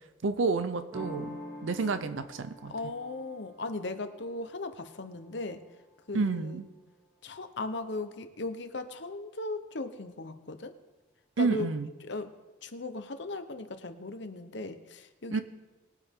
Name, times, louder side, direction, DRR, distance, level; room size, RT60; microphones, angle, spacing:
voice 1, 0.2-2.7 6.1-6.6 11.4-11.9 15.3-15.4, right 4 dB, 85° right, 11 dB, 0.6 m, -30 dB
sound 1, 0.9-6.5, left 1 dB, 15° right, 1.2 m, -46 dB
voice 2, 2.7-5.6 6.1-6.6 7.2-10.7 11.4-11.7 12.0-12.3 12.6-15.4, left 2 dB, 65° left, 9 dB, 0.9 m, -37 dB
21.0 x 8.2 x 3.7 m, 1.2 s
head